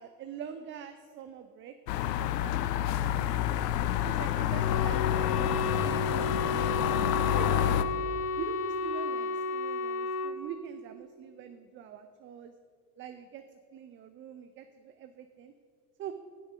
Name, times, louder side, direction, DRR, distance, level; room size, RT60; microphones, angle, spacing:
voice 1, 0.0-2.9 3.2-3.4 4.0-7.8 8.4-12.5 13.0-13.4 13.7-15.5 16.0-16.1, right 8 dB, 25° right, 8 dB, 0.4 m, -45 dB
sound 1, 1.9-7.8, left 11 dB, 80° left, 0.7 m, -28 dB
Wind instrument woodwind instrument, 4.6-10.4, left 3 dB, 60° left, 1.1 m, -32 dB
10.5 x 6.1 x 6.1 m, 2.1 s
hypercardioid pair, 90°, 48 cm